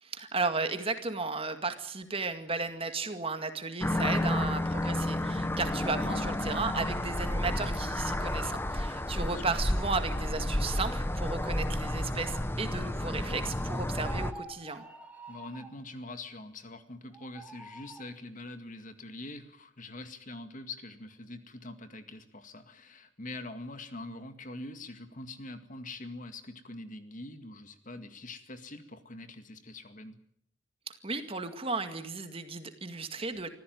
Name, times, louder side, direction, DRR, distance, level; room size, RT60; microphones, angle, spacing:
voice 1, 0.0-14.8 31.0-33.5, right 4 dB, 30° right, 8 dB, 2.1 m, -34 dB
sound 1, 3.8-14.3, left 1 dB, 10° left, 1.1 m, -31 dB
voice 2, 6.0-6.3 9.2-9.4 15.3-30.2, left 2 dB, 45° left, 9 dB, 2.1 m, -44 dB
sound 2, 14.0-15.8 17.1-18.1, right 2 dB, 5° right, 2.5 m, -47 dB
25.5 x 15.5 x 9.4 m, 0.72 s
head